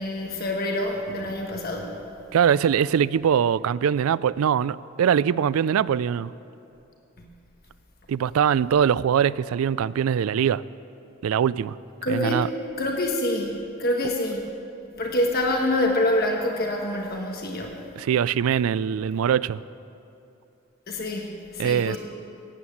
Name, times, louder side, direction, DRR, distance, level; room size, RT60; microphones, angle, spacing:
voice 1, 0.0-1.9 12.0-12.5 12.8-14.4 15.0-17.8 20.9-22.0, left 1 dB, 45° left, 1 dB, 1.3 m, -26 dB
voice 2, 2.3-6.3 8.1-10.6 11.2-11.8 12.1-12.5 18.0-19.6 21.6-22.0, right 8 dB, 85° right, 19 dB, 0.3 m, -22 dB
17.5 x 8.8 x 7.2 m, 2.7 s
head